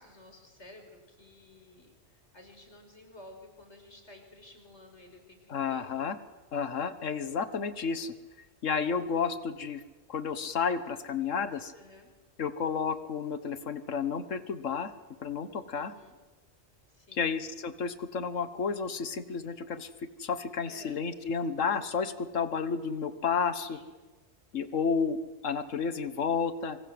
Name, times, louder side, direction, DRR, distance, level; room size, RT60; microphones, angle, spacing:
voice 1, 0.0-6.0 11.7-12.1 15.8-16.2 16.9-17.4 20.6-21.0 23.7-23.9, left 1 dB, 65° left, 4 dB, 5.3 m, -53 dB
voice 2, 5.5-6.2 6.5-8.1 8.6-9.8 10.1-11.7 12.4-14.9 15.2-15.9 17.1-19.9 20.2-23.8 24.5-25.2 25.4-26.8, left 6 dB, 85° left, 11 dB, 1.7 m, -31 dB
26.0 x 25.5 x 7.9 m, 1.2 s
omnidirectional pair, 1.3 m